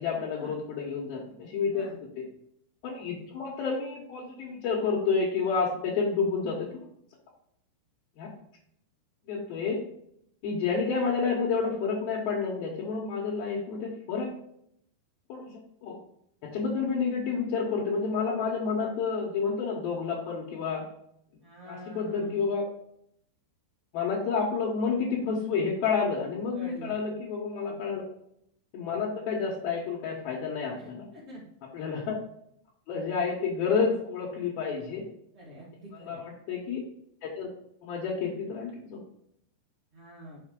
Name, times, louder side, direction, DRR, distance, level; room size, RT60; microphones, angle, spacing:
voice 1, 0.0-1.8 2.2-2.3 2.8-6.8 8.2-8.3 9.3-9.8 10.4-14.3 15.3-16.0 16.4-20.9 21.7-22.7 23.9-28.0 28.7-31.1 31.7-32.2 32.9-35.1 35.9-36.8 37.2-37.5 37.8-39.0, left 5 dB, 70° left, -4 dB, 2.7 m, -30 dB
voice 2, 21.4-22.4 26.5-27.0 27.7-27.8 30.7-31.4 35.3-36.2 39.9-40.4, right 1 dB, 45° right, -8 dB, 0.8 m, -46 dB
6.5 x 5.3 x 3.8 m, 0.73 s
omnidirectional pair, 4.9 m